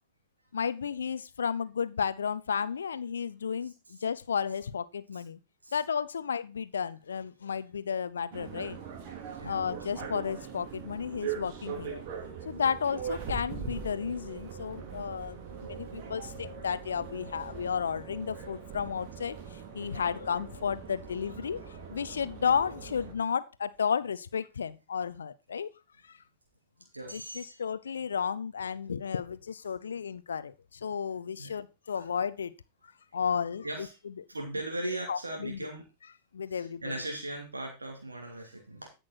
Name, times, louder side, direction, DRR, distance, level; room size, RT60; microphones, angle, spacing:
voice 1, 0.5-5.4 5.7-8.8 9.4-12.0 12.4-21.6 21.9-25.7 27.1-32.5 33.1-33.9 35.1-35.7 36.3-36.9, left 7 dB, 70° left, 16 dB, 0.8 m, -33 dB
sound 1, 8.3-23.1, right 7 dB, 45° right, 3.0 m, -41 dB
voice 2, 14.7-16.1 26.9-27.6 31.4-31.5 31.9-32.0 33.6-34.0 34.3-35.8 36.5-38.9, right 1 dB, 80° right, 2 dB, 2.8 m, -39 dB
14.5 x 6.4 x 4.3 m, 0.28 s
figure-of-eight pair, 90°, 0 cm